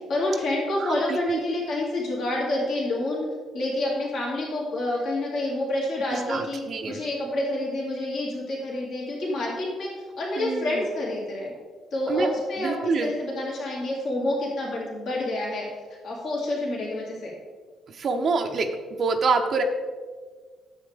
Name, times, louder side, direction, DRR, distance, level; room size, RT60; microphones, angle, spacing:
voice 1, 0.1-3.3 3.5-6.6 6.9-9.9 10.2-11.5 11.9-15.7 16.0-17.3, left 1 dB, 60° left, -4 dB, 2.4 m, -28 dB
voice 2, 0.8-1.4 6.1-7.0 10.4-10.8 12.1-12.3 12.6-13.1 17.9-18.7 19.0-19.6, right 4 dB, 50° right, 5 dB, 0.7 m, -26 dB
9.9 x 7.2 x 3.5 m, 1.5 s
figure-of-eight pair, 45°, 0 cm